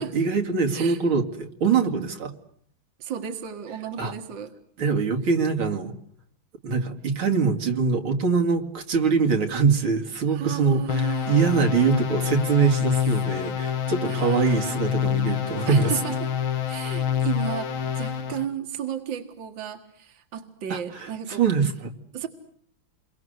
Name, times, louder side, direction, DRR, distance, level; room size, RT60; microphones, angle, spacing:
voice 1, 0.0-2.3 4.0-4.1 4.8-5.9 6.6-15.9 20.7-21.1 21.4-21.9, right 5 dB, 85° right, 3 dB, 3.2 m, -23 dB
voice 2, 0.7-1.0 3.0-4.5 10.3-11.4 13.0-13.1 14.0-14.7 15.7-16.3 16.7-21.4 22.1-22.3, right 8 dB, 70° right, 6 dB, 2.4 m, -34 dB
sound 1, 10.9-18.4, left 9 dB, 80° left, 2.3 m, -27 dB
28.5 x 23.5 x 8.0 m, 0.65 s
omnidirectional pair, 2.2 m